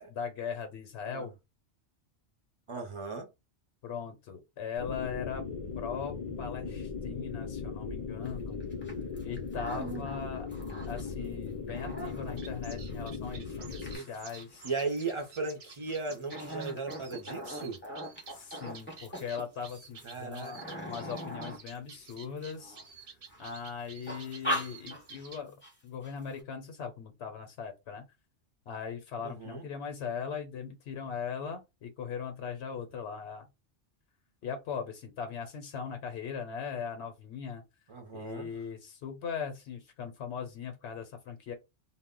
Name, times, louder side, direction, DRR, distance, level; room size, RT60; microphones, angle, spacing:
voice 1, 0.0-1.3 3.8-5.5 5.8-8.6 9.2-10.5 10.8-14.6 18.3-20.6 20.9-22.8 23.4-25.5 25.8-28.0 28.7-33.5 34.4-37.6 38.1-41.5, left 6 dB, 75° left, 0.9 m, -39 dB
voice 2, 2.7-3.3 9.7-10.1 13.9-14.1 14.6-17.8 20.0-20.9 29.2-29.7 37.9-38.5, right 4 dB, 40° right, 0.4 m, -37 dB
sound 1, 4.8-14.0, left 5 dB, 55° left, 0.3 m, -38 dB
sound 2, 8.3-8.4 8.6-11.1 11.5-22.9 23.3-23.7 24.0-25.3 25.6-25.7 26.0-26.4, equal, 10° left, 0.7 m, -41 dB
sound 3, 12.2-25.4, right 5 dB, 60° right, 0.7 m, -52 dB
2.1 x 2.1 x 3.6 m
omnidirectional pair, 1.2 m